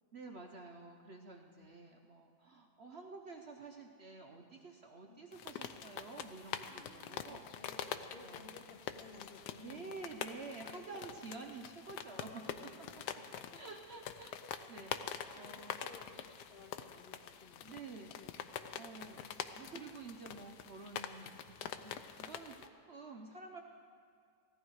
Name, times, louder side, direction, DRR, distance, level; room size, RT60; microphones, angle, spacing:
voice 1, 0.1-7.4 8.2-8.5 9.6-12.4 13.5-14.3 14.7-15.8 17.6-18.1 18.7-23.6, right 4 dB, 50° right, 2 dB, 0.8 m, -50 dB
sound 1, 5.3-22.7, left 9 dB, 80° left, 1.2 m, -45 dB
voice 2, 6.7-10.1 10.7-11.7 12.2-12.8 13.1-13.6 14.3-14.6 14.8-19.3, left 3 dB, 55° left, 2 dB, 0.7 m, -58 dB
16.5 x 14.0 x 4.7 m, 2.2 s
omnidirectional pair, 1.8 m